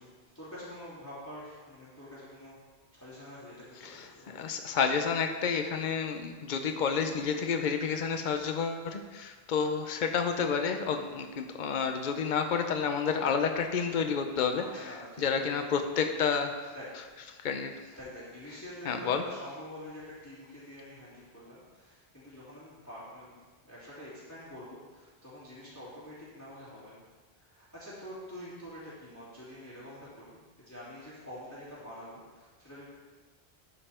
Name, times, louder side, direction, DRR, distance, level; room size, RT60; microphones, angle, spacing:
voice 1, 0.0-2.6 2.9-4.5 14.5-15.7 16.7-17.2 18.0-23.3 23.6-27.0 27.3-32.9, left 1 dB, 15° left, -13 dB, 3.2 m, -46 dB
voice 2, 3.8-14.6 15.2-16.7 17.4-17.7 18.9-19.2, left 6 dB, 55° left, 6 dB, 0.8 m, -30 dB
12.5 x 5.6 x 4.4 m, 1.4 s
omnidirectional pair, 1.0 m